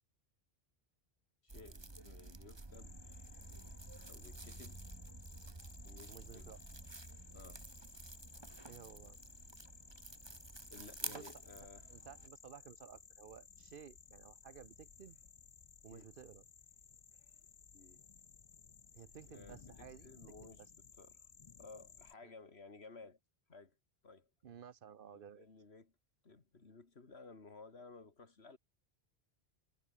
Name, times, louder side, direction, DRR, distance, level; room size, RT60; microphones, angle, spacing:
voice 1, 1.4-3.0 4.1-4.8 5.8-6.6 7.3-7.7 10.7-11.9 15.9-16.1 17.7-18.0 19.3-20.6 21.0-21.3 21.6-23.2 23.5-23.8 24.0-24.3 25.1-25.9 26.2-28.6, left 3 dB, 90° left, 2.7 m, -56 dB
sound 1, 1.5-12.3, right 2 dB, 25° right, 1.6 m, -51 dB
sound 2, 2.7-22.1, left 5 dB, 35° left, 0.7 m, -59 dB
voice 2, 6.1-6.6 8.7-9.2 11.1-11.3 11.9-15.2 15.8-16.4 18.9-20.1 24.4-25.5, right 8 dB, 60° right, 0.9 m, -55 dB
omnidirectional pair, 1.0 m